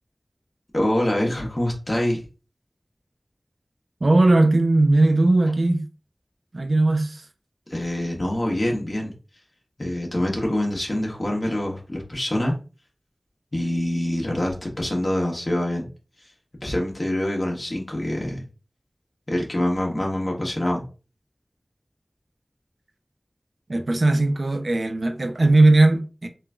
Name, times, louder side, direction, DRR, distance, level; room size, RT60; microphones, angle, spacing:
voice 1, 0.7-2.2 7.7-9.1 9.8-12.5 13.5-15.9 16.6-18.4 19.3-20.8, left 1 dB, 50° left, 1.0 m, -25 dB
voice 2, 4.0-5.8 6.5-7.2 23.7-26.3, right 2 dB, 75° right, 0.4 m, -18 dB
3.7 x 2.5 x 2.2 m
wide cardioid pair, 40°, 0 cm